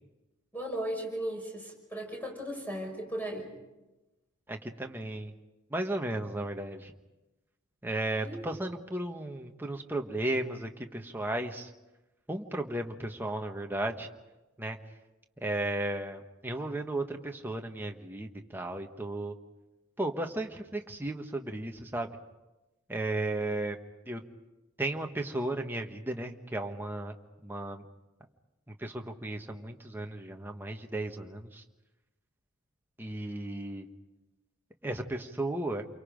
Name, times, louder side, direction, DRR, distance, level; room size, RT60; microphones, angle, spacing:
voice 1, 0.5-3.5 8.2-8.4, right 1 dB, 10° left, 1 dB, 5.7 m, -36 dB
voice 2, 4.5-5.3 5.7-6.9 7.8-11.7 12.3-14.1 14.6-14.8 15.4-19.3 20.0-22.1 22.9-23.8 24.1-24.2 24.8-27.1 27.4-27.8 28.7-31.6 33.0-33.9 34.8-35.8, right 1 dB, 10° right, 3 dB, 1.3 m, -34 dB
28.5 x 24.0 x 5.2 m, 1.0 s
head